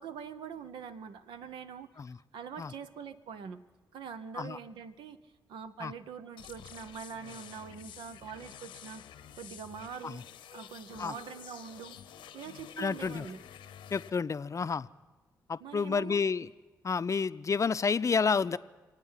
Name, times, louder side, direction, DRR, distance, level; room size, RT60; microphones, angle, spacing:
voice 1, 0.0-1.9 2.3-3.6 3.9-9.1 9.4-10.2 10.5-12.0 12.3-13.4 15.6-16.2, right 7 dB, 80° right, 11 dB, 0.7 m, -44 dB
sound 1, 6.4-14.1, left 10 dB, 85° left, 0.8 m, -50 dB
voice 2, 12.8-13.3 13.9-14.9 15.5-16.5 16.8-18.6, left 5 dB, 40° left, 14 dB, 0.5 m, -30 dB
26.0 x 8.9 x 5.6 m, 1.2 s
supercardioid pair, 50°, 8 cm